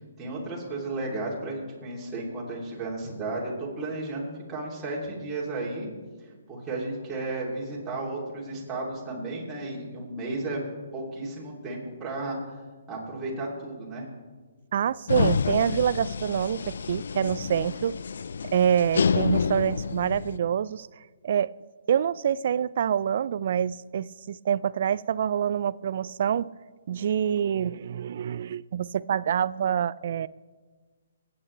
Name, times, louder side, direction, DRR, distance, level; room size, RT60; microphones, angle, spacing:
voice 1, 0.2-5.9 6.2-10.6 10.9-12.4 12.9-14.1, right 2 dB, 15° right, 2.9 m, -34 dB
voice 2, 14.7-18.0 18.5-20.9 21.2-21.5 21.9-26.5 26.9-30.3, right 9 dB, 55° right, 0.3 m, -26 dB
sound 1, 15.1-20.4, left 6 dB, 70° left, 0.3 m, -28 dB
25.0 x 8.8 x 3.3 m
hypercardioid pair, 150°, 0 cm